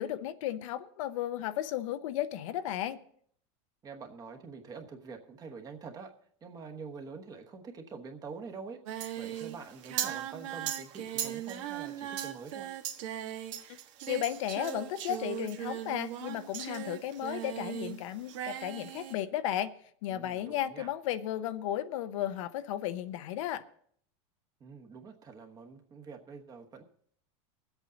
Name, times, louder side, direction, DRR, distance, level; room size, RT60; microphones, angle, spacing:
voice 1, 0.0-3.0 14.1-19.7 20.0-23.6, left 12 dB, 70° left, 0.7 m, -34 dB
voice 2, 3.8-6.1 6.4-8.8 9.2-12.7 20.1-20.9 24.6-26.8, right 5 dB, 20° right, 1.1 m, -46 dB
Singing, 8.9-18.0 18.2-19.1, right 11 dB, 70° right, 1.3 m, -38 dB
21.0 x 8.1 x 4.0 m
supercardioid pair, 150°, 17 cm